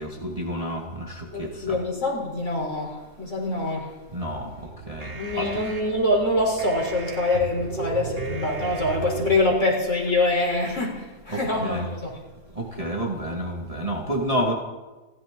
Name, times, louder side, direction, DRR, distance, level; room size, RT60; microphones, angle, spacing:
voice 1, 0.0-1.8 4.1-4.5 4.9-5.1 5.4-5.5 11.3-11.9 12.6-14.5, equal, 20° right, -1 dB, 1.9 m, -29 dB
voice 2, 1.3-3.9 5.1-12.1, left 2 dB, 45° left, -2 dB, 4.1 m, -25 dB
sound 1, 4.4-9.4, right 3 dB, 35° right, 1.8 m, -35 dB
29.5 x 12.0 x 3.8 m, 1.2 s
omnidirectional pair, 1.7 m